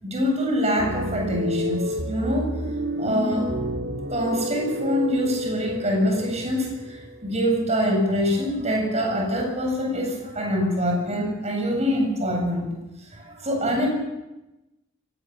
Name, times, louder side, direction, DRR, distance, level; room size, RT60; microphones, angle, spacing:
voice 1, 0.0-2.5 3.0-3.5 4.1-12.7 13.1-13.9, equal, 30° right, 1 dB, 7.7 m, -24 dB
sound 1, 0.8-8.3, equal, 85° right, 3.6 m, -30 dB
23.5 x 18.5 x 7.3 m, 1.0 s
head